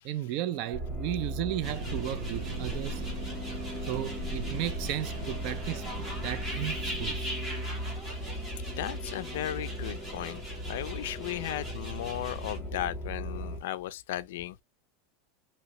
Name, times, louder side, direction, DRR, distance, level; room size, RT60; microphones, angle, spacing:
voice 1, 0.0-3.0 3.9-5.9 6.2-7.3, right 13 dB, 45° right, 0.3 m, -34 dB
sound 1, 0.7-13.6, equal, ahead, 0.6 m, -38 dB
sound 2, 1.6-12.6, right 1 dB, 15° right, 1.2 m, -43 dB
sound 3, 1.6-7.2, right 2 dB, 75° right, 1.1 m, -39 dB
voice 2, 8.7-14.6, left 13 dB, 75° left, 0.3 m, -36 dB
3.0 x 2.8 x 2.6 m
supercardioid pair, 165°, 0 cm